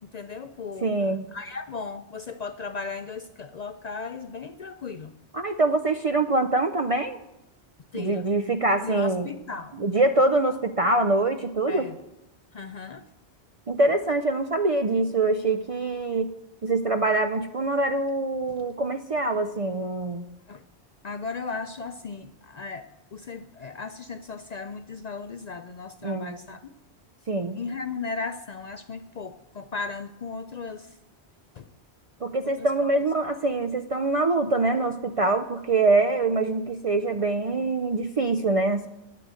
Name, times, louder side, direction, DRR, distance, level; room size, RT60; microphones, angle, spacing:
voice 1, 0.0-0.9 1.3-5.1 7.9-8.3 8.8-9.8 11.7-12.0 12.5-13.0 18.6-18.7 20.5-20.6 21.0-26.6 27.5-31.0 31.6-31.7 32.4-32.9, left 4 dB, 50° left, 9 dB, 0.5 m, -36 dB
voice 2, 0.8-1.3 5.3-7.2 7.9-9.3 9.8-11.8 13.7-16.3 16.6-20.3 26.0-26.4 27.3-27.6 32.2-38.9, right 2 dB, 45° right, 8 dB, 0.4 m, -24 dB
9.8 x 8.7 x 8.1 m, 0.95 s
omnidirectional pair, 1.1 m